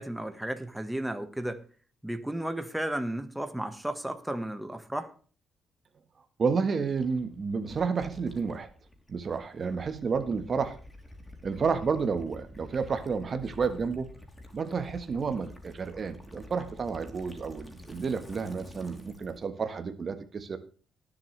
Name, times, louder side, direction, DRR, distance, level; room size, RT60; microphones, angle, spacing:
voice 1, 0.0-1.6 2.0-5.1, right 1 dB, 5° right, 1.5 m, -33 dB
voice 2, 6.4-8.7 9.1-10.8 11.4-14.1 14.5-20.6, right 5 dB, 45° right, 1.4 m, -30 dB
Gurgling / Liquid, 6.9-19.5, left 1 dB, 15° left, 3.3 m, -49 dB
19.0 x 7.8 x 3.3 m
cardioid pair, 90°, 0 cm